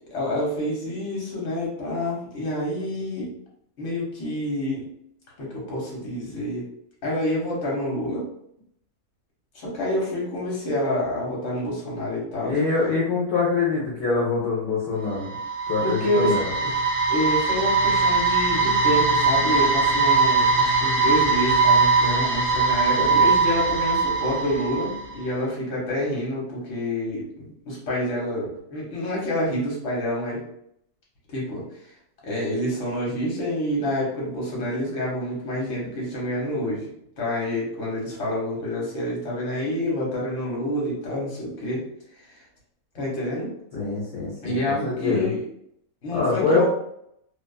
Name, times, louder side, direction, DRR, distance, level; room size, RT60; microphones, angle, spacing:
voice 1, 0.1-3.3 3.8-4.8 5.4-6.7 7.0-8.2 9.5-12.6 15.8-16.8 17.1-30.4 31.3-31.6 32.2-36.8 37.2-41.8 42.9-43.5 44.4-45.4 46.0-46.7, left 1 dB, 55° left, -4 dB, 1.3 m, -27 dB
voice 2, 12.4-15.3 15.7-16.5 43.7-44.6 44.8-45.3 46.1-46.7, left 4 dB, 70° left, -6 dB, 1.1 m, -24 dB
sound 1, 15.1-25.1, right 4 dB, 65° right, 1.0 m, -21 dB
2.6 x 2.4 x 2.3 m, 0.72 s
omnidirectional pair, 1.6 m